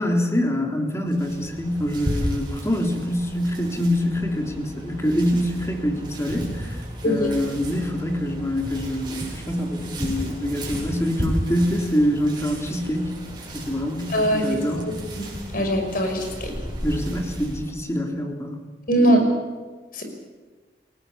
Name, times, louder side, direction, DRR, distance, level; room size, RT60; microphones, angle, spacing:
voice 1, 0.0-6.8 7.0-13.2 13.5-14.9 16.8-18.6, equal, 15° left, 2 dB, 3.4 m, -25 dB
sound 1, 1.1-17.7, equal, 25° right, 7.8 m, -34 dB
voice 2, 14.1-14.5 15.1-15.3 15.5-16.5 18.9-19.2 19.9-20.0, equal, 55° left, 4 dB, 5.7 m, -21 dB
29.0 x 18.0 x 7.4 m, 1.4 s
head